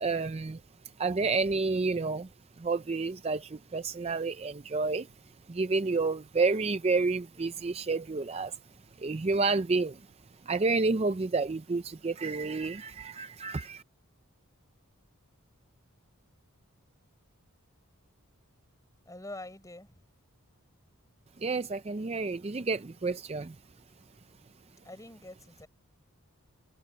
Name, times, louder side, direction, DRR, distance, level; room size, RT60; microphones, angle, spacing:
voice 1, 0.0-0.6 1.0-2.3 2.6-3.4 3.7-5.0 5.5-8.5 9.0-9.9 10.5-13.8 21.4-23.5, right 3 dB, 30° right, 0.4 m, -29 dB
voice 2, 19.1-20.0 24.8-25.7, left 1 dB, 15° left, 6.4 m, -45 dB
head